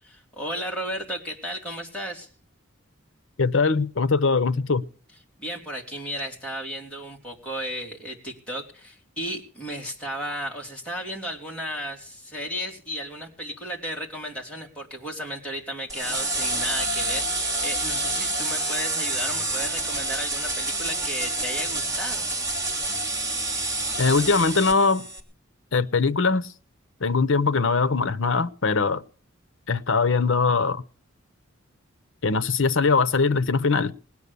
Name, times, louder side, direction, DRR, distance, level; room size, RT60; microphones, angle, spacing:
voice 1, 0.0-2.3 5.4-22.3, equal, 5° left, 3.1 m, -34 dB
voice 2, 3.4-4.8 24.0-25.1 25.7-26.4 27.0-29.0 29.7-30.8 32.2-33.9, left 4 dB, 65° left, 0.8 m, -21 dB
sound 1, 15.9-25.2, right 2 dB, 15° right, 2.7 m, -28 dB
20.0 x 9.6 x 6.9 m
head